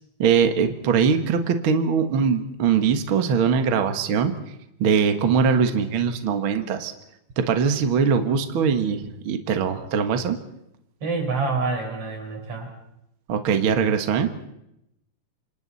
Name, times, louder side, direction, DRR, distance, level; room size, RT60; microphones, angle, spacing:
voice 1, 0.2-4.3 4.8-6.9 7.4-10.4 13.3-14.3, right 6 dB, 70° right, 7 dB, 1.2 m, -21 dB
voice 2, 11.0-12.7, right 4 dB, 35° right, 3 dB, 4.8 m, -27 dB
29.0 x 26.5 x 4.2 m, 0.81 s
omnidirectional pair, 4.8 m